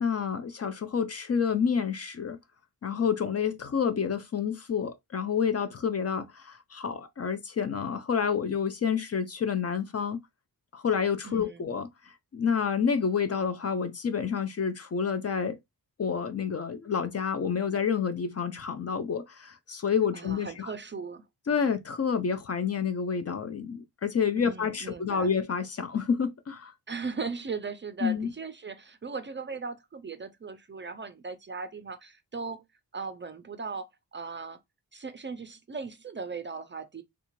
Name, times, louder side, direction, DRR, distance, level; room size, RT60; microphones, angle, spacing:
voice 1, 0.0-2.4 2.8-10.2 10.7-11.9 12.3-15.6 16.0-20.7 21.5-26.7 28.0-28.3, left 6 dB, 40° left, 0.4 m, -29 dB
voice 2, 11.2-11.7 20.1-21.3 24.4-25.3 26.9-32.6 32.9-34.6 34.9-37.0, right 4 dB, 30° right, 0.4 m, -38 dB
3.4 x 2.4 x 3.0 m
wide cardioid pair, 95°, 40 cm